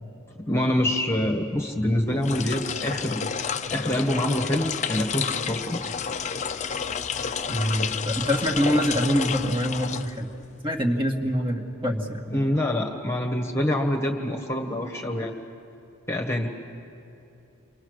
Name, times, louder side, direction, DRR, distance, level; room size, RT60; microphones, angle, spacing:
voice 1, 0.5-3.2 3.7-5.9 12.3-15.3 16.1-16.5, left 1 dB, 10° left, 2 dB, 1.5 m, -26 dB
sound 1, 2.1-10.5, left 6 dB, 35° left, 0.5 m, -30 dB
voice 2, 7.5-10.3 10.6-12.2, equal, 25° right, 1 dB, 2.0 m, -25 dB
30.0 x 24.0 x 6.5 m, 2.8 s
head